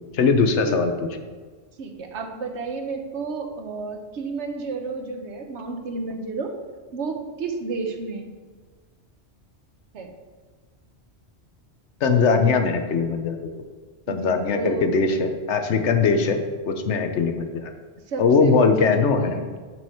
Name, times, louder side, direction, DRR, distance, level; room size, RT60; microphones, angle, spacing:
voice 1, 0.1-0.9 12.0-13.5 14.1-17.7 18.2-19.4, left 4 dB, 80° left, 6 dB, 1.1 m, -21 dB
voice 2, 1.8-6.5 6.9-8.3 9.9-10.1 14.1-14.8 18.1-19.4, right 4 dB, 80° right, 5 dB, 1.2 m, -31 dB
8.8 x 6.1 x 4.3 m, 1.5 s
omnidirectional pair, 1.2 m